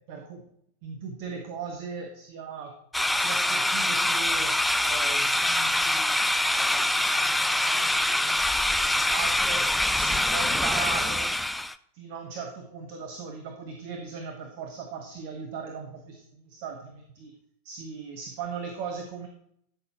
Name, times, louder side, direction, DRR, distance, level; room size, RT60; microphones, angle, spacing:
voice 1, 0.1-0.4 0.8-2.7 3.1-4.6 4.9-6.2 6.6-6.9 7.4-9.6 9.9-11.3 11.9-17.3 17.6-19.3, right 5 dB, 45° right, 3 dB, 1.2 m, -38 dB
sound 1, 2.9-11.7, left 1 dB, 5° left, 0.4 m, -24 dB
13.0 x 6.4 x 3.0 m, 0.71 s
figure-of-eight pair, 90°, 0 cm